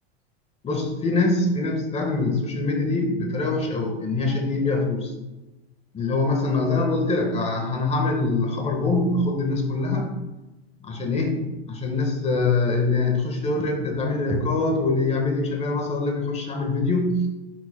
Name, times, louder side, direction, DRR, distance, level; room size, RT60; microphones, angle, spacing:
voice 1, 0.6-5.1 5.9-10.1 10.8-17.3, left 3 dB, 20° left, 3 dB, 1.4 m, -24 dB
10.5 x 4.8 x 2.2 m, 1.0 s
supercardioid pair, 125°, 32 cm